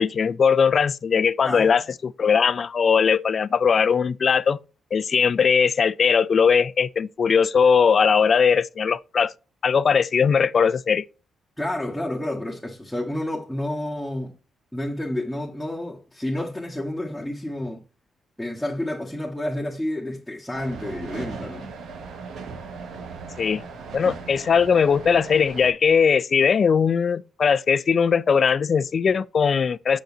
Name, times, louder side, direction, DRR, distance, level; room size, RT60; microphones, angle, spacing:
voice 1, 0.0-4.6 4.9-9.3 9.6-11.0 23.4-23.6 23.9-30.0, left 6 dB, 55° left, 0.4 m, -20 dB
voice 2, 1.4-1.9 11.6-14.3 14.7-17.8 18.4-21.8, left 1 dB, ahead, 1.6 m, -30 dB
sound 1, 20.5-25.7, right 4 dB, 80° right, 1.1 m, -38 dB
6.6 x 6.1 x 2.7 m
cardioid pair, 70°, 0 cm